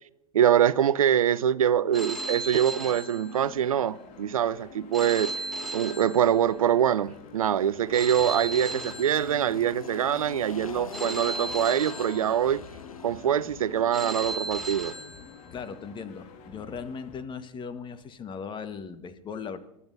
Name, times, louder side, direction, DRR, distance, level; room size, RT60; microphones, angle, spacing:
voice 1, 0.3-12.6 13.0-14.9, right 9 dB, 80° right, 0.5 m, -24 dB
sound 1, 1.9-17.2, left 6 dB, 45° left, 1.9 m, -48 dB
Telephone, 1.9-3.8 4.9-6.8 7.9-9.8 10.9-12.8 13.9-15.8, right 2 dB, ahead, 1.9 m, -36 dB
Engine, 6.7-14.1, left 6 dB, 85° left, 0.9 m, -43 dB
voice 2, 15.5-19.6, left 6 dB, 25° left, 1.3 m, -38 dB
28.0 x 12.5 x 2.7 m
figure-of-eight pair, 90°, 18 cm